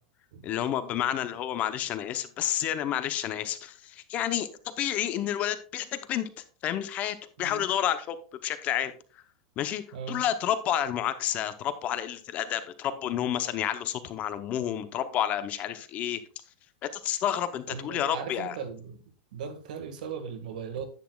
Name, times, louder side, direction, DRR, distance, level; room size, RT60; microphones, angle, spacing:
voice 1, 0.4-6.3 6.6-8.2 8.4-8.9 9.6-16.2 16.9-18.5, left 10 dB, 35° left, 0.7 m, -30 dB
voice 2, 17.7-19.0 19.3-20.8, right 6 dB, 75° right, 1.7 m, -38 dB
10.5 x 8.4 x 2.3 m
supercardioid pair, 150°, 4 cm